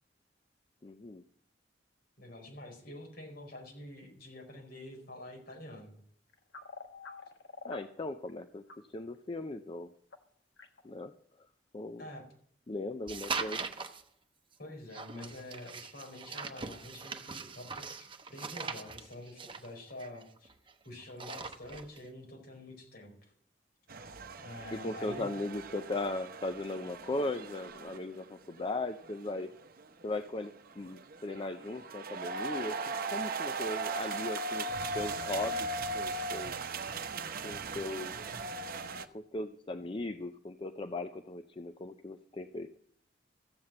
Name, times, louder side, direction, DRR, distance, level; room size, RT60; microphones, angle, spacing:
voice 1, 0.8-1.2 7.6-8.6 8.9-9.9 10.8-11.1 11.7-12.1 12.7-13.6 24.7-29.5 30.0-32.8 33.1-34.7 34.9-35.7 35.9-36.5 37.4-38.1 39.1-42.7, left 2 dB, 30° left, 9 dB, 0.5 m, -38 dB
voice 2, 2.2-6.0 12.0-12.2 14.6-20.5 20.8-23.1 24.4-25.3, left 1 dB, 60° left, 1 dB, 4.7 m, -47 dB
sound 1, 4.8-4.9 6.3-7.8 8.3-8.8 9.1-9.4 10.1-10.2 10.6-11.0, left 4 dB, 75° left, 1.3 m, -47 dB
sound 2, 13.1-14.0 14.9-20.7 21.0-22.0, right 4 dB, 30° right, 1.0 m, -41 dB
sound 3, 23.9-39.1, right 3 dB, 55° right, 0.9 m, -38 dB
14.0 x 7.8 x 7.5 m, 0.64 s
head